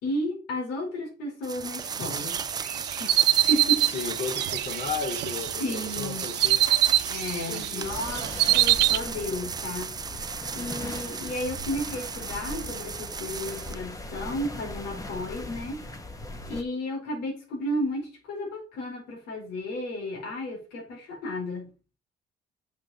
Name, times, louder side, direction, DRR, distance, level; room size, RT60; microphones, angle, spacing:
voice 1, 0.0-2.4 3.0-3.8 5.6-6.3 7.1-8.3 8.5-10.2 10.5-15.8 16.5-21.7, left 1 dB, 90° left, 4.8 m, -33 dB
sound 1, 1.4-13.8, right 6 dB, 25° right, 0.4 m, -36 dB
sound 2, 2.2-5.5 5.9-7.7 7.9-9.0, right 15 dB, 80° right, 0.9 m, -23 dB
voice 2, 3.9-6.6 7.5-8.0, left 5 dB, 40° left, 3.5 m, -34 dB
sound 3, 7.8-16.6, left 2 dB, 20° left, 1.5 m, -39 dB
7.5 x 6.0 x 7.5 m
cardioid pair, 110°, 17 cm